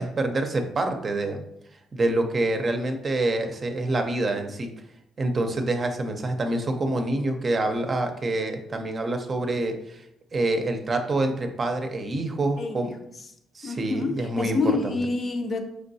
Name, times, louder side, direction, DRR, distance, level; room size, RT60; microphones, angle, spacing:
voice 1, 0.0-1.4 1.9-4.7 5.2-10.0 10.3-12.9 13.5-15.0, right 2 dB, 40° right, 5 dB, 0.6 m, -26 dB
voice 2, 12.6-12.9 13.6-15.6, left 3 dB, 45° left, 5 dB, 0.6 m, -27 dB
4.4 x 3.4 x 2.7 m, 0.78 s
cardioid pair, 90°, 0 cm